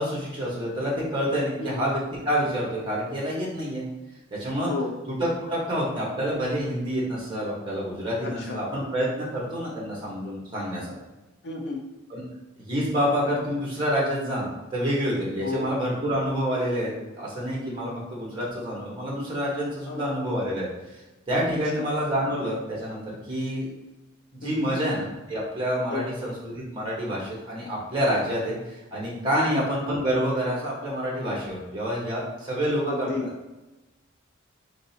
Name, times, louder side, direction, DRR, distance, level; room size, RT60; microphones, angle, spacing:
voice 1, 0.0-3.8 4.3-4.7 5.1-10.9 12.1-12.2 12.7-20.7 20.9-21.0 21.3-23.7 24.3-28.5 28.9-33.1, equal, 25° right, -5 dB, 1.1 m, -28 dB
voice 2, 4.6-4.9 8.2-8.6 11.4-11.8 15.4-15.7 19.9-20.0 21.7-21.9 24.4-24.8 25.9-26.0 29.3-29.6 32.8-33.3, left 3 dB, 55° left, 0 dB, 0.4 m, -32 dB
3.8 x 3.7 x 2.8 m, 1.1 s
head